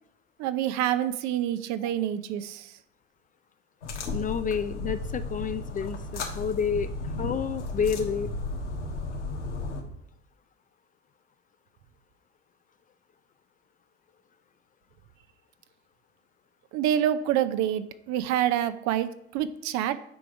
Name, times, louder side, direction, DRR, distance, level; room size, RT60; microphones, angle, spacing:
voice 1, 0.4-2.7 16.7-20.0, right 11 dB, 55° right, 12 dB, 0.7 m, -27 dB
sound 1, 3.8-9.8, left 2 dB, 85° left, 1.4 m, -34 dB
voice 2, 4.1-8.3, left 6 dB, 25° left, 12 dB, 0.4 m, -30 dB
9.2 x 4.9 x 4.7 m, 0.75 s
hypercardioid pair, 70°, 35 cm